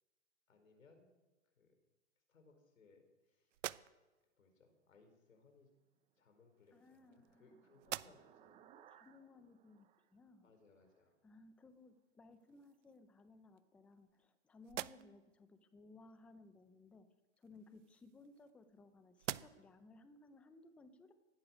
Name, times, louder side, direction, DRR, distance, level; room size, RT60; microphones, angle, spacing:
voice 1, 0.5-1.1 1.4-1.8 2.3-3.6 4.4-5.7 6.2-8.9 10.4-11.1, left 3 dB, 85° left, 5 dB, 4.2 m, -67 dB
sound 1, 3.5-4.3 5.5-5.6 6.6-7.4 7.8-8.5 9.0-9.1 11.8-11.9 12.3-13.0 13.6-14.3 14.6-15.4 17.4-18.8 19.2-19.8, right 12 dB, 70° right, 0.7 m, -48 dB
sound 2, 6.2-11.0, right 9 dB, 15° right, 0.8 m, -67 dB
voice 2, 6.7-7.6 8.9-10.5 11.2-17.1 17.4-21.1, left 3 dB, 5° left, 10 dB, 0.5 m, -61 dB
16.5 x 9.8 x 6.2 m, 1.2 s
hypercardioid pair, 145°, 39 cm